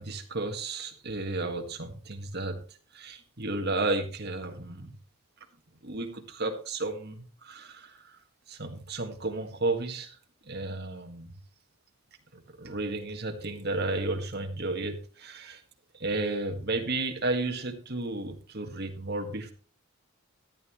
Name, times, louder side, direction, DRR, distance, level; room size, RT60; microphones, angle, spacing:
voice 1, 0.0-2.6 2.9-4.9 5.8-8.1 8.5-10.2 10.4-11.3 12.3-15.6 15.9-19.5, right 2 dB, 50° right, 4 dB, 1.8 m, -33 dB
14.0 x 11.0 x 3.2 m, 0.38 s
head